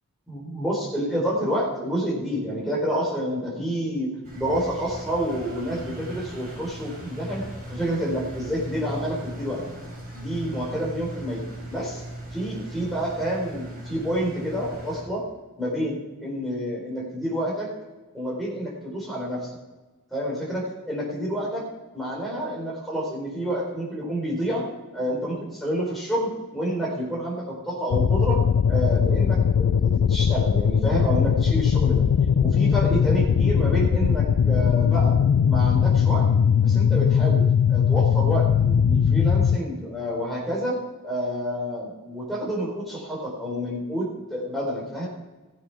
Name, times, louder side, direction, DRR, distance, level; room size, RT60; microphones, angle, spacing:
voice 1, 0.3-9.6 10.1-11.4 11.7-12.0 12.3-15.2 15.6-17.7 18.1-19.5 20.1-21.6 21.9-24.6 24.9-28.4 28.7-32.1 32.4-35.2 35.4-36.3 36.6-40.8 41.0-45.1, equal, ahead, -4 dB, 3.9 m, -28 dB
Engine, 4.2-15.0, right 1 dB, 45° right, 5.1 m, -38 dB
sound 1, 27.9-39.6, left 7 dB, 80° left, 0.4 m, -20 dB
16.0 x 7.7 x 5.8 m, 1.2 s
head